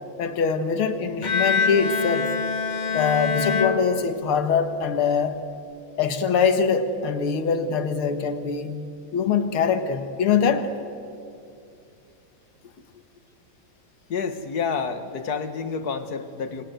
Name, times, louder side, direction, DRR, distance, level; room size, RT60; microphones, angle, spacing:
voice 1, 0.2-2.3 2.9-5.4 6.0-8.8 9.1-10.7, left 6 dB, 85° left, 2.3 m, -23 dB
Bowed string instrument, 1.2-4.6, left 5 dB, 35° left, 0.8 m, -25 dB
voice 2, 14.1-16.6, left 5 dB, 50° left, 1.9 m, -29 dB
28.5 x 25.0 x 8.1 m
omnidirectional pair, 2.3 m